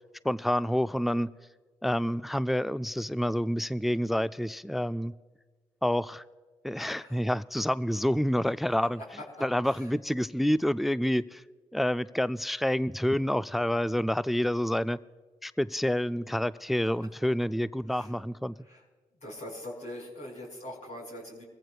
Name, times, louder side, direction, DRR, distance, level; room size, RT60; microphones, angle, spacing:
voice 1, 0.2-1.3 1.8-5.1 5.8-6.2 6.6-9.0 9.4-11.4 11.7-15.0 15.4-18.5, equal, ahead, 0.4 m, -28 dB
voice 2, 6.7-7.2 8.9-9.3 9.6-9.9 17.9-18.1 18.6-18.8 19.2-21.5, left 1 dB, 55° left, 4.9 m, -43 dB
22.0 x 15.0 x 2.3 m
supercardioid pair, 45°, 14 cm